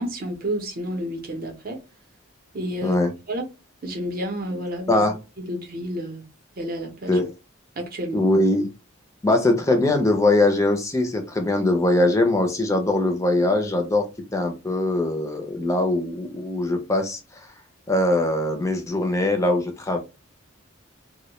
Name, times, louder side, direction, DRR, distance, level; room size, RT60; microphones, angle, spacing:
voice 1, 0.0-1.8 2.5-3.0 3.3-3.4 3.8-5.1 5.4-6.2 6.6-7.2 7.8-8.2, equal, 45° right, 0.6 m, -30 dB
voice 2, 8.1-8.7 9.2-14.1 14.3-17.2 17.9-20.0, left 2 dB, 15° left, 0.4 m, -21 dB
2.2 x 2.0 x 2.9 m
head